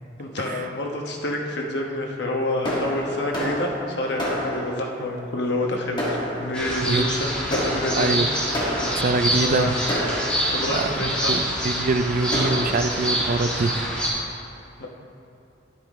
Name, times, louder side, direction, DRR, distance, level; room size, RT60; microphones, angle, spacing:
voice 1, 0.2-8.2 8.8-9.0 9.4-9.7 10.5-11.3 14.8-14.9, left 1 dB, 65° left, 0 dB, 1.2 m, -28 dB
Fireworks, 2.6-5.0 5.6-5.7 6.0-6.8 7.5-9.3 9.9-10.8 11.5-11.6 11.9-12.0 12.3-12.7, equal, 25° left, 1.9 m, -29 dB
sound 1, 6.5-14.1, equal, 5° left, 2.1 m, -26 dB
voice 2, 8.0-8.3 8.9-9.8 10.7-14.0, right 3 dB, 45° right, 9 dB, 0.4 m, -24 dB
9.9 x 8.9 x 3.6 m, 2.7 s
head